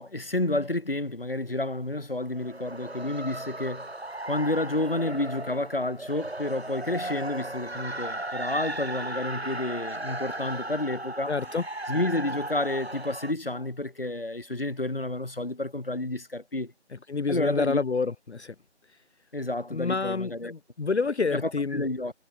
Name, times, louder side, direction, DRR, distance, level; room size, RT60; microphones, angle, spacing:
voice 1, 0.0-3.9 4.2-11.4 11.9-16.7 17.3-17.8 19.3-20.5 21.3-22.1, left 2 dB, 55° left, 3.2 m, -30 dB
sound 1, 2.3-13.3, right 1 dB, 65° right, 4.3 m, -36 dB
voice 2, 11.3-11.6 17.1-18.5 19.7-21.8, left 4 dB, 70° left, 0.7 m, -28 dB
figure-of-eight pair, 175°, 34 cm